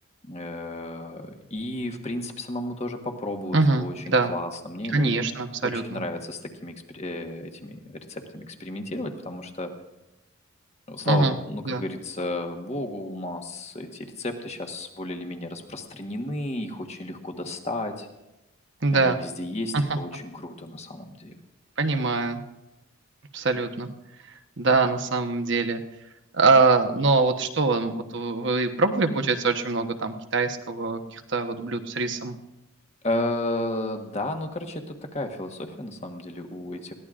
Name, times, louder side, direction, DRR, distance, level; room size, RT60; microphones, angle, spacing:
voice 1, 0.2-5.2 5.6-9.7 10.9-18.1 18.9-21.3 33.0-36.9, left 1 dB, 30° left, 4 dB, 1.3 m, -33 dB
voice 2, 3.5-4.3 4.9-6.0 11.0-11.4 11.7-11.8 18.8-19.2 19.7-20.0 21.8-22.4 23.3-23.9 24.3-25.8 26.3-32.4, right 3 dB, 55° right, 6 dB, 1.1 m, -23 dB
21.0 x 16.0 x 2.5 m, 0.96 s
head